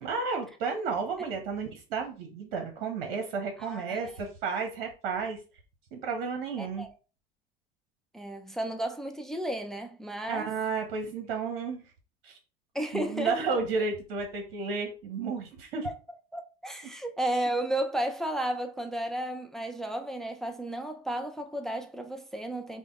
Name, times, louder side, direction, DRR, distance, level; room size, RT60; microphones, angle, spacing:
voice 1, 0.0-5.4 5.9-6.9 10.3-11.8 12.2-12.4 12.9-15.9, right 5 dB, 55° right, 0.9 m, -32 dB
voice 2, 3.6-4.2 6.6-6.9 8.1-10.5 12.7-13.6 15.8-15.9 16.3-22.8, right 1 dB, ahead, 0.4 m, -33 dB
5.1 x 2.1 x 3.5 m
figure-of-eight pair, 70°, 29 cm